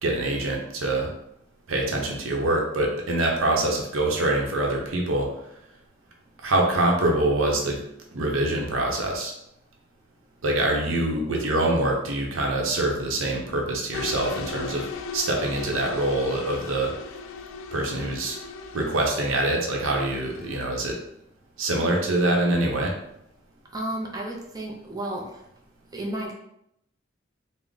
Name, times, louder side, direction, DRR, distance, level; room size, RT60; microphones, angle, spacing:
voice 1, 0.0-1.1 1.7-5.3 6.4-7.8 8.1-9.3 10.4-16.9 17.7-18.4 18.7-21.0 21.6-22.9, right 1 dB, 85° right, 0 dB, 0.7 m, -25 dB
sound 1, 13.9-20.7, left 4 dB, 75° left, 0.3 m, -37 dB
voice 2, 23.7-25.4 25.9-26.3, right 1 dB, 20° right, -1 dB, 0.5 m, -32 dB
3.5 x 2.1 x 3.8 m, 0.78 s
head